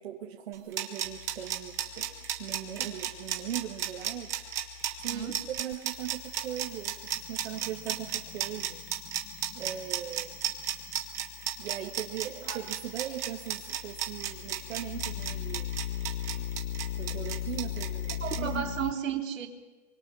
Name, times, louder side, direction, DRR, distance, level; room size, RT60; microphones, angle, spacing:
voice 1, 0.0-2.1 2.4-4.3 5.0-8.8 9.5-10.6 11.6-15.7 16.3-16.5 17.0-18.7, right 10 dB, 50° right, 0 dB, 1.8 m, -39 dB
sound 1, 0.5-18.4, right 11 dB, 10° right, 0.6 m, -33 dB
sound 2, 1.0-18.9, left 11 dB, 70° left, 1.6 m, -41 dB
voice 2, 5.0-5.4 12.5-12.6 18.2-19.5, right 8 dB, 80° right, 2 dB, 3.4 m, -33 dB
25.0 x 23.5 x 5.7 m, 1.2 s
hypercardioid pair, 175°, 39 cm